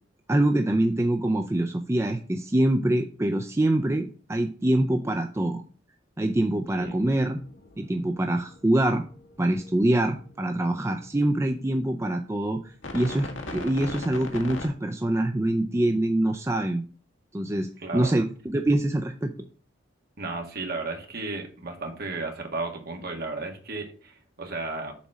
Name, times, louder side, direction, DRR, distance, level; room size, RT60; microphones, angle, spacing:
voice 1, 0.3-5.6 6.2-7.4 7.8-9.0 9.4-12.6 12.9-16.8 17.3-19.3, right 1 dB, 15° right, 5 dB, 0.4 m, -25 dB
sound 1, 6.6-10.9 12.8-14.7, left 2 dB, 75° left, 1.7 m, -40 dB
voice 2, 17.8-18.2 20.2-24.9, right 3 dB, 50° right, 2 dB, 1.8 m, -34 dB
7.1 x 4.2 x 6.1 m, 0.40 s
head